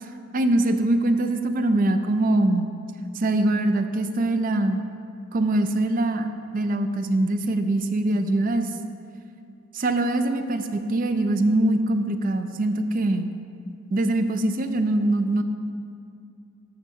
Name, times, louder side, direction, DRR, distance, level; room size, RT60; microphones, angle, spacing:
voice 1, 0.3-2.7 3.1-4.8 5.3-6.3 6.5-8.7 9.7-13.3 13.9-15.4, right 1 dB, 40° right, 8 dB, 0.4 m, -23 dB
11.5 x 7.1 x 2.8 m, 2.4 s
head